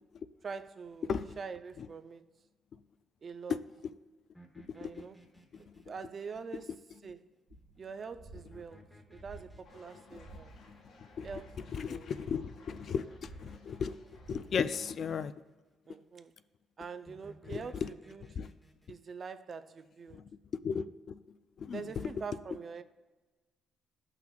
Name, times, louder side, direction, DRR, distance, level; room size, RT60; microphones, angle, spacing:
voice 1, 0.4-2.3 3.2-3.6 4.7-5.2 5.6-6.7 7.0-7.3 7.8-10.5 11.2-12.1 15.9-16.3 16.8-18.2 18.9-20.2 21.7-22.8, right 5 dB, 40° right, 0.4 m, -44 dB
sound 1, 4.3-7.2 8.3-11.8 12.7-15.3 17.1-18.9, equal, 5° left, 0.9 m, -59 dB
sound 2, 7.5-14.8, right 1 dB, 70° right, 1.9 m, -54 dB
sound 3, 9.6-15.0, left 3 dB, 70° left, 1.4 m, -60 dB
voice 2, 11.7-14.0 14.3-15.3 17.5-17.9 18.4-18.5 20.1-20.2 20.6-21.2 21.6-22.1, left 6 dB, 50° left, 0.3 m, -35 dB
14.0 x 5.8 x 2.3 m
cardioid pair, 125°, 0 cm